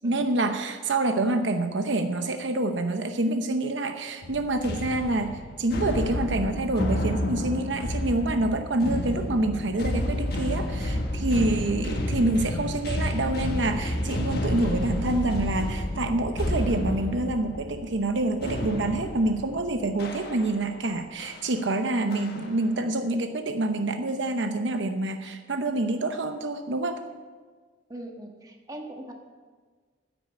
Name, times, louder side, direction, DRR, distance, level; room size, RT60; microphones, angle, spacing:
voice 1, 0.0-27.0, right 2 dB, 70° right, 7 dB, 0.8 m, -27 dB
sound 1, 4.2-20.8 21.2-21.5 22.1-22.6, left 1 dB, 55° left, 1.4 m, -30 dB
voice 2, 11.5-11.8 22.0-22.4 27.9-29.1, right 1 dB, 20° right, 1 dB, 1.5 m, -41 dB
9.9 x 8.7 x 8.7 m, 1.5 s
head